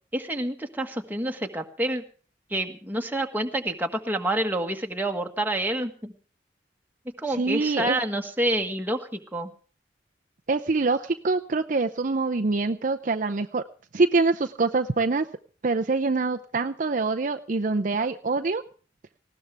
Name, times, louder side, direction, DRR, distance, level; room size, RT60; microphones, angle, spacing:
voice 1, 0.1-2.0 2.5-6.1 7.2-9.5, right 1 dB, 10° right, 3 dB, 1.6 m, -28 dB
voice 2, 7.4-8.0 10.5-13.6 13.9-15.3 15.6-18.6, right 3 dB, 45° right, 6 dB, 0.6 m, -25 dB
19.5 x 16.0 x 3.5 m, 0.39 s
head